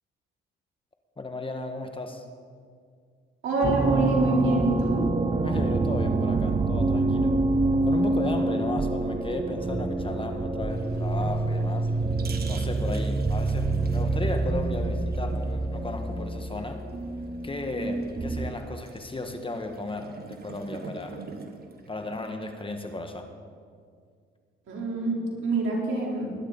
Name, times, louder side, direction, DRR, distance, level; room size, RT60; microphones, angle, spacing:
voice 1, 1.2-2.2 5.4-7.4 7.8-11.9 12.5-16.8 17.4-21.2 21.9-23.3, left 2 dB, 25° left, 5 dB, 1.6 m, -35 dB
voice 2, 3.4-5.1 24.7-26.4, right 3 dB, 65° right, -2 dB, 4.1 m, -25 dB
sound 1, 3.6-18.7, right 2 dB, 25° right, 0.9 m, -27 dB
sound 2, 10.7-22.9, right 4 dB, 45° right, 1.7 m, -46 dB
20.5 x 10.5 x 4.1 m, 2.1 s
supercardioid pair, 65°, 21 cm